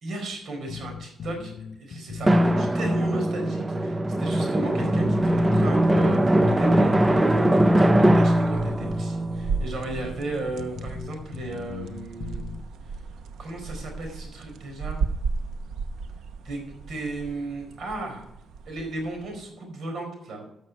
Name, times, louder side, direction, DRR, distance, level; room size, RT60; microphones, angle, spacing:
voice 1, 0.0-1.5 1.8-12.4 13.4-15.0 16.4-18.3 18.7-20.4, right 2 dB, 55° right, 3 dB, 4.5 m, -34 dB
sound 1, 0.7-3.3 3.6-3.7 4.3-4.4 4.8-9.1 9.3-9.4 10.0-10.1 10.6-12.6, left 7 dB, 50° left, 0.7 m, -39 dB
Drum, 2.3-10.5, right 1 dB, 15° right, 0.5 m, -21 dB
sound 2, 4.6-19.5, right 4 dB, 80° right, 0.9 m, -36 dB
13.0 x 6.6 x 4.6 m, 0.79 s
cardioid pair, 145°, 0 cm